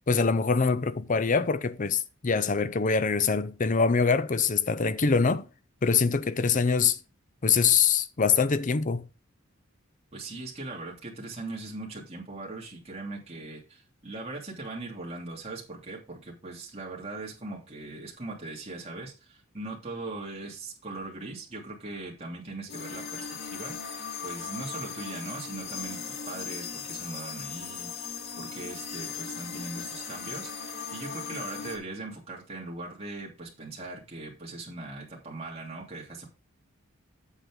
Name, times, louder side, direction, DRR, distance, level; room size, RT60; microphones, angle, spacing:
voice 1, 0.1-5.5 5.8-7.0 7.4-9.1, left 5 dB, 40° left, 0.6 m, -24 dB
voice 2, 10.1-23.8 24.2-30.5 30.9-36.3, right 2 dB, 30° right, 2.9 m, -40 dB
sound 1, 22.7-31.8, left 6 dB, 55° left, 2.2 m, -38 dB
8.2 x 7.5 x 3.7 m
head